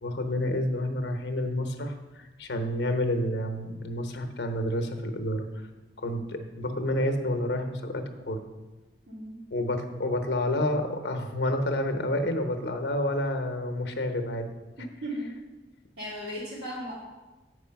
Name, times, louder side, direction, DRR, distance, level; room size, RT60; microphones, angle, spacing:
voice 1, 0.0-5.5 6.0-8.4 9.5-14.5, left 1 dB, 75° left, 5 dB, 0.9 m, -29 dB
voice 2, 9.1-9.4 14.8-15.4 16.0-16.9, equal, 75° right, -12 dB, 2.7 m, -36 dB
8.2 x 4.8 x 5.8 m, 1.2 s
head